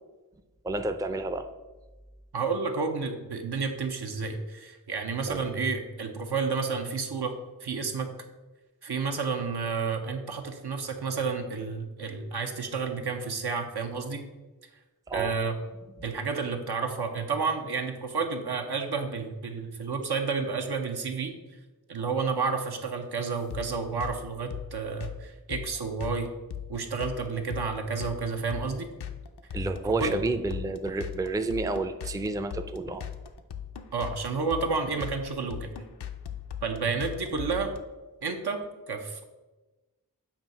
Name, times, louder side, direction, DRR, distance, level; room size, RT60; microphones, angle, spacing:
voice 1, 0.6-1.5 5.3-5.4 15.1-15.3 29.5-33.0, right 3 dB, 10° right, 8 dB, 0.4 m, -30 dB
voice 2, 2.3-7.3 7.6-8.1 8.8-14.2 15.1-15.6 16.0-21.3 21.9-26.3 26.7-28.9 30.0-30.2 33.9-35.7 36.6-37.7 38.2-38.6 38.9-39.2, right 4 dB, 80° right, 4 dB, 0.8 m, -30 dB
sound 1, 23.5-37.8, left 9 dB, 90° left, 0.5 m, -39 dB
7.4 x 2.8 x 5.3 m, 1.2 s
wide cardioid pair, 55°, 38 cm